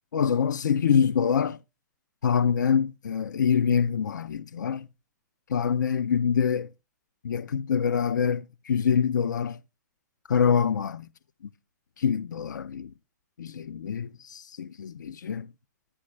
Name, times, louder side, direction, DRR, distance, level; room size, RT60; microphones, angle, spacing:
voice 1, 0.1-1.6 2.2-4.9 5.5-6.7 7.2-9.6 10.3-11.1 12.0-12.9 13.4-15.5, left 7 dB, 85° left, 0.4 m, -25 dB
9.8 x 9.8 x 3.1 m
hypercardioid pair, 125°, 10 cm